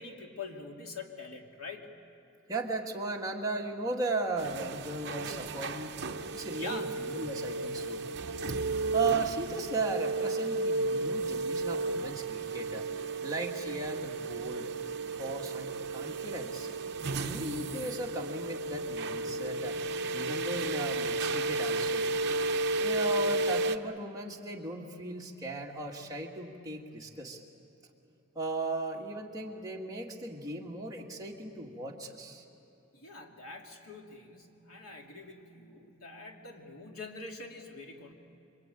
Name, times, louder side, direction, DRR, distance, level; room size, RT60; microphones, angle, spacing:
voice 1, 0.0-1.9 6.5-6.9 8.4-8.5 32.9-38.1, left 3 dB, 90° left, 1 dB, 2.9 m, -44 dB
voice 2, 2.5-6.0 6.3-8.1 8.9-12.9 13.2-14.7 15.2-16.7 17.2-19.8 20.1-22.1 22.8-27.4 28.4-32.4, right 2 dB, 15° right, -2 dB, 2.0 m, -36 dB
sound 1, 4.4-23.8, right 3 dB, 50° right, 0.8 m, -33 dB
26.5 x 24.0 x 9.1 m, 2.9 s
head